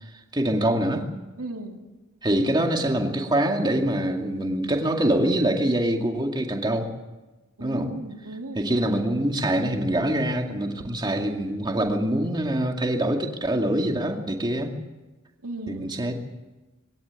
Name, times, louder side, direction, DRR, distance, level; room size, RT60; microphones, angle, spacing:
voice 1, 0.3-1.1 2.2-6.9 7.6-7.9 8.6-14.8 15.7-16.1, right 1 dB, 20° right, 3 dB, 2.2 m, -24 dB
voice 2, 1.4-1.8 7.6-8.8 15.4-16.0, right 2 dB, 80° right, 3 dB, 2.7 m, -36 dB
21.5 x 17.5 x 8.4 m, 1.1 s
head